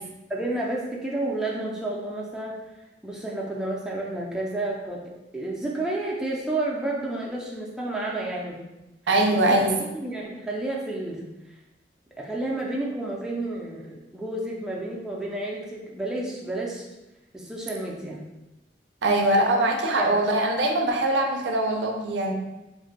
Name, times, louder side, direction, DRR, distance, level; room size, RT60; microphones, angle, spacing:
voice 1, 0.3-2.6 3.0-5.0 5.3-8.6 9.3-9.4 9.9-11.2 12.2-16.9 17.3-18.2 20.0-20.2, right 2 dB, 5° right, -4 dB, 0.4 m, -30 dB
voice 2, 9.1-9.8 19.0-22.3, right 1 dB, 80° right, 2 dB, 0.4 m, -22 dB
2.5 x 2.1 x 3.8 m, 1.0 s
head